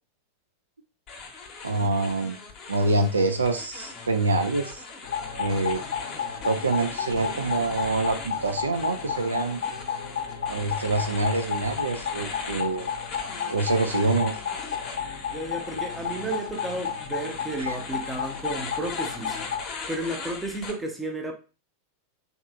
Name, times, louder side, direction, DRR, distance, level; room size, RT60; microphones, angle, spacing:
sound 1, 1.1-20.7, left 4 dB, 35° left, 0.8 m, -40 dB
voice 1, 1.6-2.4 2.7-4.8 5.4-5.8 6.4-9.6 10.5-12.9 13.5-14.4 17.6-17.8, right 2 dB, 75° right, 0.3 m, -26 dB
sound 2, 5.0-19.6, left 7 dB, 65° left, 0.5 m, -33 dB
voice 2, 15.3-19.4 19.9-21.3, right 2 dB, 10° right, 0.6 m, -32 dB
3.2 x 2.8 x 2.3 m
figure-of-eight pair, 90°, 0 cm